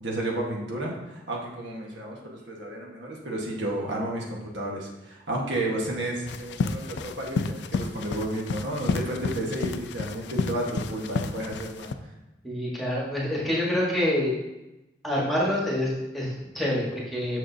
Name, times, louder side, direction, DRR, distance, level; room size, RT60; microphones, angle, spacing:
voice 1, 0.0-11.9, right 1 dB, 85° right, -1 dB, 1.3 m, -32 dB
sound 1, 6.3-11.9, left 4 dB, 70° left, 0.4 m, -31 dB
voice 2, 12.4-14.3 15.0-17.4, left 1 dB, ahead, -6 dB, 1.3 m, -27 dB
6.4 x 6.4 x 2.7 m, 0.99 s
head